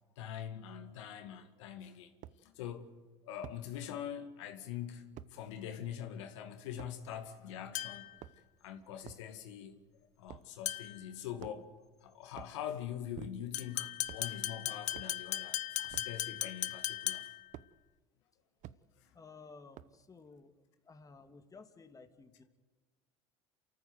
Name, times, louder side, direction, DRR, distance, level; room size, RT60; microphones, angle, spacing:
voice 1, 0.2-2.1 2.4-8.1 8.6-9.8 10.2-11.7 12.0-17.3, left 9 dB, 80° left, 2.1 m, -44 dB
sound 1, 1.2-1.3 2.2-2.4 3.4-3.6 5.2-5.3 6.8-7.0 8.0-8.6 9.0-9.3 10.3-10.5 11.4-11.8 12.3-12.6 13.1-13.6 14.0-14.3 14.9-15.2 15.9-16.2 17.5-17.7 18.6-18.8 19.7-20.1, right 12 dB, 55° right, 0.8 m, -50 dB
sound 2, 7.8-8.2 10.7-11.1 13.5-17.5, left 14 dB, 55° left, 1.0 m, -38 dB
voice 2, 19.1-20.5 20.8-22.4, left 4 dB, 25° left, 2.1 m, -55 dB
28.0 x 14.0 x 8.0 m
hypercardioid pair, 85°, 15 cm